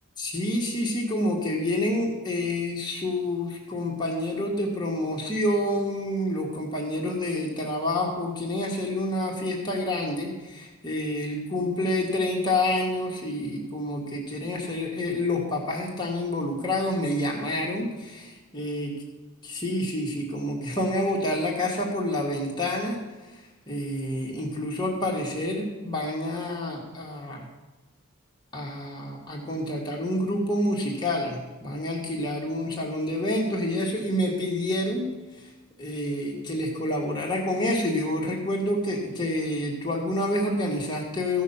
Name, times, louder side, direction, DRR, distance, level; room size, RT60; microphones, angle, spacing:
voice 1, 0.2-18.9 19.4-23.0 23.3-23.4 23.7-27.5 28.5-35.1 35.8-41.4, left 1 dB, 20° left, -2 dB, 1.8 m, -28 dB
15.0 x 6.3 x 5.7 m, 1.2 s
head